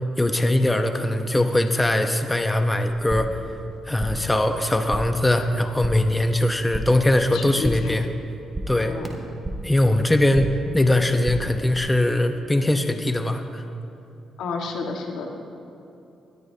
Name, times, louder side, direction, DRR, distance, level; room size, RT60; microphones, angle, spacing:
voice 1, 0.2-3.4 3.9-8.1 8.7-9.0 9.6-13.6, left 1 dB, 10° left, 6 dB, 0.8 m, -21 dB
sound 1, 3.0-3.5 3.7-4.4 4.6-5.3 5.5-6.1 6.4-7.1 7.4-8.0 8.3-9.8 10.1-10.7 11.0-11.8, right 1 dB, 25° right, 1.7 m, -33 dB
voice 2, 7.3-7.9 8.7-9.1 14.4-15.3, left 4 dB, 80° left, 2 dB, 1.5 m, -31 dB
20.5 x 13.5 x 2.8 m, 2.8 s
cardioid pair, 90°, 0 cm